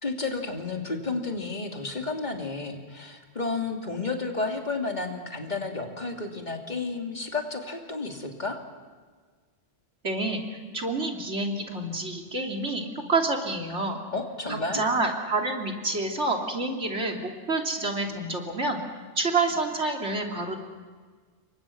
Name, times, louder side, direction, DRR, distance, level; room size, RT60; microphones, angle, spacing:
voice 1, 0.0-8.6 14.1-14.9, left 3 dB, 40° left, 2 dB, 3.0 m, -32 dB
voice 2, 10.0-10.4 10.7-14.0 14.5-18.8 19.1-20.6, right 2 dB, 75° right, 1 dB, 3.4 m, -28 dB
28.5 x 23.5 x 6.0 m, 1.5 s
omnidirectional pair, 1.2 m